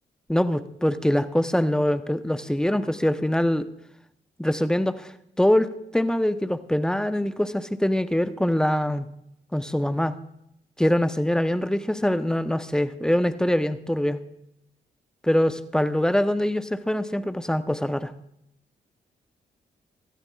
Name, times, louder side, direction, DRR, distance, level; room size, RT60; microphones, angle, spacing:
voice 1, 0.3-3.7 4.4-5.1 5.4-9.1 9.5-10.1 10.8-14.2 15.2-18.1, left 1 dB, 5° left, 12 dB, 0.9 m, -23 dB
18.5 x 13.0 x 2.4 m, 0.79 s
hypercardioid pair, 40°, 20 cm